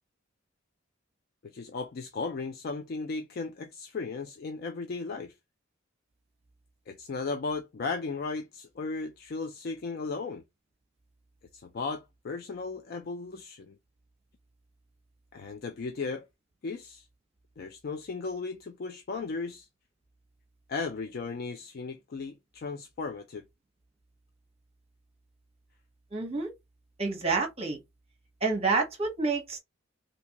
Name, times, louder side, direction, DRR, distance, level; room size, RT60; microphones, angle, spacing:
voice 1, 1.4-5.3 6.9-10.4 11.5-13.8 15.3-16.3 16.6-17.1 17.6-19.7 20.7-23.4, left 4 dB, 50° left, 0.4 m, -36 dB
voice 2, 26.1-26.5 27.0-27.8 28.4-29.6, right 4 dB, 30° right, 1.0 m, -28 dB
3.4 x 2.7 x 2.8 m
head